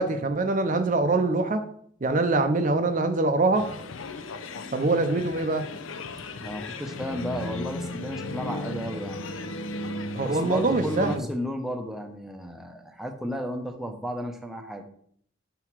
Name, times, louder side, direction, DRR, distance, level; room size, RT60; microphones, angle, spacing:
voice 1, 0.0-1.6 2.0-3.7 4.7-5.7 10.1-11.3, right 2 dB, 40° right, 8 dB, 0.6 m, -24 dB
sound 1, 3.5-11.2, left 2 dB, 80° left, 0.7 m, -36 dB
voice 2, 6.4-9.2 10.2-14.9, equal, ahead, 4 dB, 0.7 m, -33 dB
6.9 x 5.8 x 4.6 m, 0.63 s
head